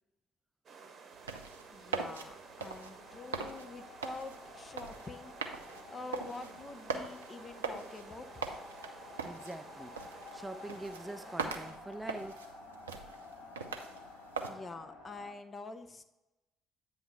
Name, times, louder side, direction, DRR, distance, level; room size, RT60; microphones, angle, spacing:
sound 1, 0.7-11.7, right 5 dB, 45° right, 0.9 m, -53 dB
sound 2, 1.1-14.5, right 5 dB, 85° right, 0.5 m, -42 dB
voice 1, 1.7-5.4 5.9-8.5 14.4-16.0, left 3 dB, 30° left, 0.7 m, -46 dB
sound 3, 2.3-15.3, left 3 dB, 65° left, 1.6 m, -52 dB
voice 2, 9.2-10.0 10.3-12.5, right 2 dB, 10° right, 0.3 m, -44 dB
8.7 x 3.2 x 5.6 m
figure-of-eight pair, 45°, 0 cm